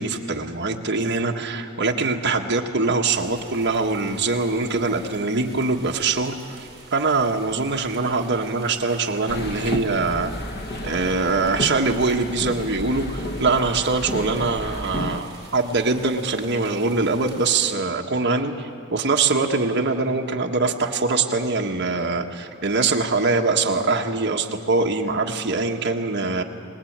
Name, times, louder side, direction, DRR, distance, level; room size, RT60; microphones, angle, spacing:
voice 1, 0.0-10.3 10.8-26.4, right 3 dB, 50° right, 1 dB, 1.6 m, -23 dB
sound 1, 3.1-17.7, right 3 dB, 20° right, 5.2 m, -46 dB
sound 2, 9.3-15.2, left 1 dB, 45° left, 1.0 m, -32 dB
23.0 x 20.0 x 8.9 m, 2.4 s
head